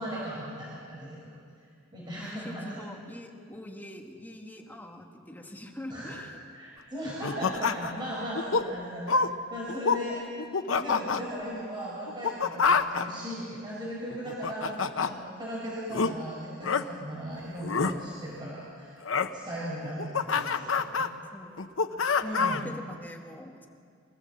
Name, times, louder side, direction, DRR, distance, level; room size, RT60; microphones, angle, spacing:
voice 1, 0.0-1.4 1.9-2.8 5.9-6.2 6.5-9.2 9.5-10.2 10.8-18.9 19.3-21.0 22.2-22.7, equal, 25° right, -6 dB, 4.5 m, -37 dB
voice 2, 2.2-6.3 20.9-22.1 22.4-23.7, left 1 dB, 10° left, 1 dB, 1.8 m, -44 dB
sound 1, 7.2-8.0 8.3-8.7 9.1-9.3 9.7-10.0 10.4-11.2 12.1-13.0 14.1-15.1 15.9-16.1 16.6-16.8 17.6-17.9 19.0-19.3 19.8-21.1 21.6-22.7, left 5 dB, 80° left, 0.8 m, -26 dB
24.0 x 14.5 x 7.6 m, 2.2 s
head